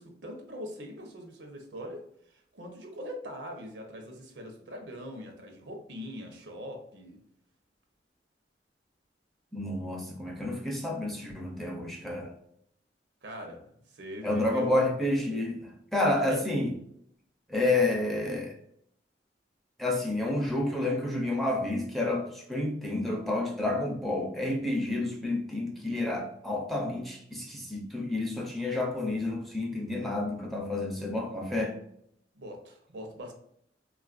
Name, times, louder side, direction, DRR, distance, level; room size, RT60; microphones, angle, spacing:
voice 1, 0.0-7.2 13.2-14.8 16.2-16.4 32.3-33.3, equal, 80° right, 3 dB, 0.7 m, -42 dB
voice 2, 9.5-12.3 14.2-16.7 17.5-18.6 19.8-31.8, left 2 dB, ahead, 0 dB, 0.5 m, -30 dB
3.4 x 2.4 x 2.4 m, 0.69 s
head